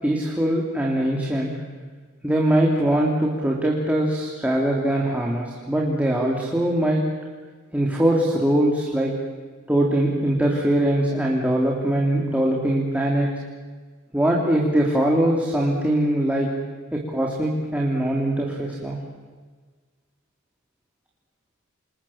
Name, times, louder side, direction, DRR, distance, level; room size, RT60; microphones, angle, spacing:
voice 1, 0.0-1.5 2.2-7.0 7.7-9.1 9.7-13.3 14.1-16.5 16.9-19.0, right 1 dB, 5° right, -2 dB, 3.2 m, -22 dB
29.0 x 28.0 x 7.3 m, 1.5 s
head